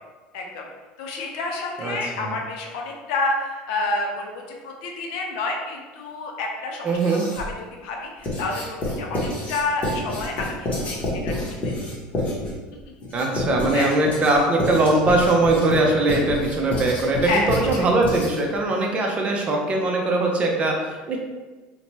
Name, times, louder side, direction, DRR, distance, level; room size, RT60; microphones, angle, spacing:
voice 1, 0.3-0.7 1.0-7.0 7.2-7.4 7.8-11.0 11.2-11.3 11.6-11.7 12.9-13.0 13.7-13.9 17.2-17.9, left 2 dB, 75° left, 1 dB, 0.6 m, -29 dB
voice 2, 1.8-2.3 6.8-7.3 13.1-21.2, right 2 dB, 30° right, 0 dB, 0.6 m, -21 dB
Writing, 6.9-7.6 8.2-18.6, left 1 dB, 35° left, 0.9 m, -29 dB
2.7 x 2.2 x 3.0 m, 1.3 s
supercardioid pair, 110°, 4 cm